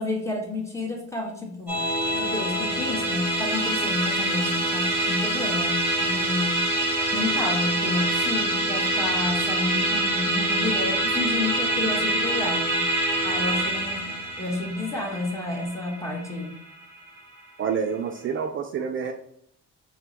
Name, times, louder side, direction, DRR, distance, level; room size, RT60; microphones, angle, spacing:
voice 1, 0.0-1.8 2.1-6.7 7.1-12.9 13.2-14.1 14.4-16.5, left 2 dB, 10° left, 0 dB, 1.2 m, -30 dB
Musical instrument, 1.7-17.2, right 1 dB, 10° right, 1.4 m, -25 dB
voice 2, 17.6-19.1, right 6 dB, 45° right, 5 dB, 0.4 m, -28 dB
4.4 x 2.2 x 4.0 m, 0.73 s
cardioid pair, 90°, 30 cm